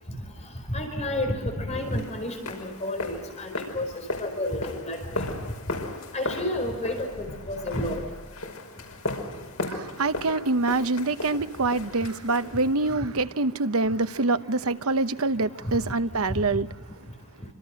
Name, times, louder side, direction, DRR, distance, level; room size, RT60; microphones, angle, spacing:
voice 1, 0.7-3.9 4.2-5.3 6.1-8.0, left 1 dB, 30° left, 4.9 m, -30 dB
sound 1, 1.9-13.0, left 2 dB, 85° left, 5.4 m, -36 dB
voice 2, 9.7-16.7, right 3 dB, 70° right, 0.9 m, -25 dB
27.5 x 26.0 x 6.4 m
head